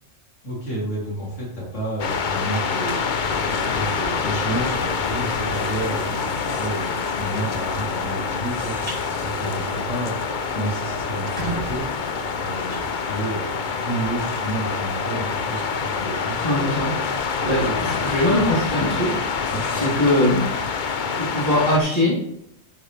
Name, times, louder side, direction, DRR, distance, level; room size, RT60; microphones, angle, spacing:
voice 1, 0.4-3.0 3.5-11.8 12.3-13.5 13.8-16.7 17.4-17.8 19.5-20.0, right 1 dB, 65° left, -6 dB, 3.8 m, -30 dB
sound 1, 2.0-21.8, left 5 dB, 45° left, 0.7 m, -26 dB
sound 2, 8.9-9.0 9.5-9.7 10.1-10.2 10.4-10.5 11.0-13.6, right 3 dB, 35° right, 3.5 m, -35 dB
voice 2, 16.4-16.9 17.4-20.4 21.2-22.3, left 1 dB, 30° left, -8 dB, 3.2 m, -22 dB
11.5 x 6.5 x 3.3 m, 0.81 s
omnidirectional pair, 1.3 m